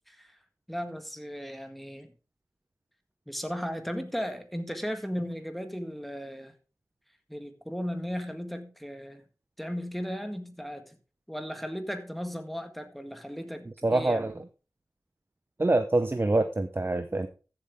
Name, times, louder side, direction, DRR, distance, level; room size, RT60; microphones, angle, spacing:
voice 1, 0.7-2.1 3.3-6.5 7.3-9.2 9.6-11.0 11.3-14.4, equal, ahead, 1.7 m, -36 dB
voice 2, 13.8-14.3 15.6-17.3, right 2 dB, 35° right, 0.8 m, -25 dB
14.0 x 7.8 x 3.6 m
wide cardioid pair, 60°, 7 cm